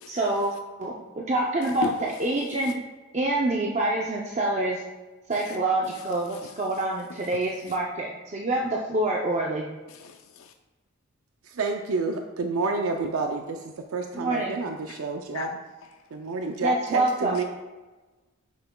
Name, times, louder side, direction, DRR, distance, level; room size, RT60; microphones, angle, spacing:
voice 1, 0.1-0.5 0.8-0.9 1.3-2.8 3.1-4.8 5.3-9.7 14.1-14.6 16.6-17.3, right 2 dB, 35° right, 0.5 m, -26 dB
voice 2, 1.6-2.0 2.6-2.7 5.3-5.6 5.9-6.0 6.3-6.5 7.1-7.4 7.7-7.8 9.9-10.5 14.9-15.1 15.3-16.0 17.3-17.4, left 5 dB, 75° left, 0.4 m, -38 dB
voice 3, 11.6-15.5 16.1-17.4, right 3 dB, 80° right, 0.5 m, -29 dB
9.1 x 5.7 x 2.3 m
head